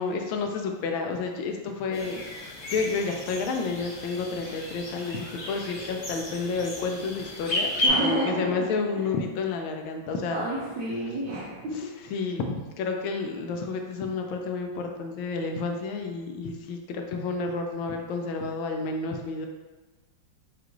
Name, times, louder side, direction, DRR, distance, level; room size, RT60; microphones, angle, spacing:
voice 1, 0.0-7.7 8.0-10.5 11.7-19.5, left 4 dB, 85° left, 3 dB, 1.4 m, -30 dB
sound 1, 1.9-7.9, left 2 dB, 55° left, 0.8 m, -34 dB
voice 2, 7.8-8.7 9.0-9.1 10.3-11.9, right 1 dB, 80° right, -6 dB, 1.4 m, -30 dB
4.9 x 2.4 x 3.0 m, 1.2 s
omnidirectional pair, 2.1 m